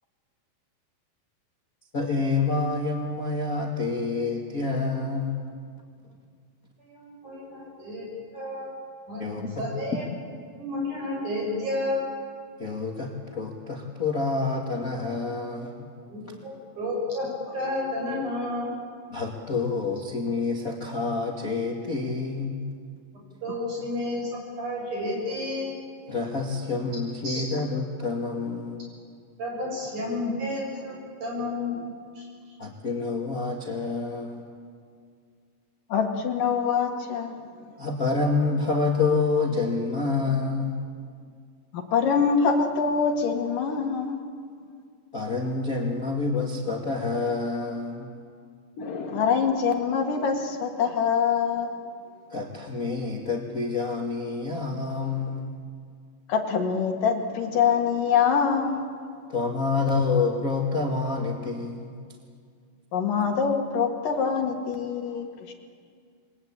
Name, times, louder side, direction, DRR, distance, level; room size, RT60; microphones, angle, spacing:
voice 1, 1.9-5.5 9.2-9.6 12.6-15.9 19.1-22.6 23.5-23.6 26.1-28.9 32.6-34.5 37.8-40.8 45.1-48.1 52.3-55.5 59.3-62.0, left 4 dB, 30° left, 0 dB, 1.9 m, -28 dB
voice 2, 6.8-8.7 9.1-9.2 9.6-10.0 10.6-12.0 16.1-18.7 23.4-24.3 24.6-25.7 27.2-27.4 29.4-31.9 32.2-32.3, left 1 dB, 55° right, -2 dB, 8.8 m, -31 dB
voice 3, 35.9-37.3 41.7-44.2 48.8-51.7 56.3-58.9 62.9-65.5, left 6 dB, 65° left, 4 dB, 3.3 m, -24 dB
28.5 x 22.0 x 8.8 m, 2.1 s
omnidirectional pair, 4.2 m